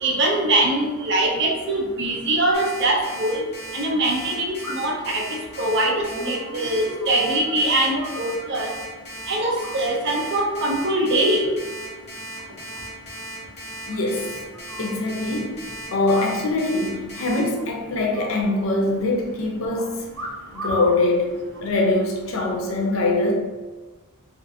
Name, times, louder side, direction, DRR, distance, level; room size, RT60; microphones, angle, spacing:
voice 1, 0.0-3.4 3.7-5.2 5.6-8.7 9.3-11.5, right 1 dB, 50° right, 0 dB, 0.5 m, -22 dB
Alarm, 2.5-17.4, right 1 dB, 30° left, 0.8 m, -37 dB
sound 1, 4.6-5.1 5.5-7.5 7.8-8.8 9.6-10.1 10.4-10.8 11.2-11.7 12.0-12.1 12.3-12.4 12.7-12.8 13.1-13.2 13.9-14.9 16.0-16.6 16.9-17.0 17.3-17.7 18.1-19.0 20.1-21.0 21.7-22.1, equal, 85° right, 1.2 m, -37 dB
sound 2, 6.0-8.0, right 2 dB, ahead, 0.4 m, -37 dB
voice 2, 13.9-14.4 14.8-20.1 20.5-21.3 21.6-23.3, left 2 dB, 65° left, 0 dB, 0.5 m, -23 dB
2.4 x 2.4 x 2.6 m, 1.3 s
head